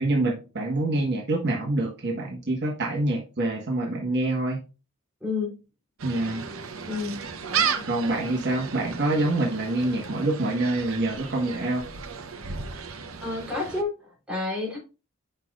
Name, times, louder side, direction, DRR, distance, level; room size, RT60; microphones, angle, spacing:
voice 1, 0.0-4.6 6.0-6.4 7.9-11.8, right 2 dB, 50° right, -1 dB, 1.3 m, -26 dB
voice 2, 5.2-5.5 6.9-7.2 7.5-7.9 13.2-14.8, left 3 dB, 5° right, -4 dB, 3.2 m, -30 dB
Gull seagull, 6.0-13.8, right 6 dB, 65° right, 0.8 m, -34 dB
7.6 x 5.8 x 2.4 m, 0.31 s
head